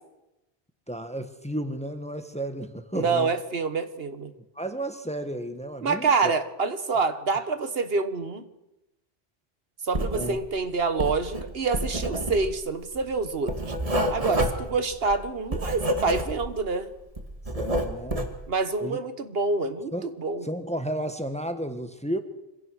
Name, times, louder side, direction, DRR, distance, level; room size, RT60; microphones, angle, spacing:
voice 1, 0.9-3.3 4.5-6.3 10.1-10.4 17.5-18.3 18.8-19.0 19.9-20.1 20.4-22.2, right 1 dB, 5° left, 8 dB, 1.3 m, -32 dB
voice 2, 2.9-4.3 5.8-8.4 9.8-13.7 14.1-16.9 18.5-20.4, right 4 dB, 70° right, 10 dB, 1.5 m, -27 dB
Writing, 9.9-10.6 10.9-16.7 17.0-18.4, equal, 35° right, 2.2 m, -29 dB
25.5 x 16.5 x 6.3 m, 0.93 s
omnidirectional pair, 1.1 m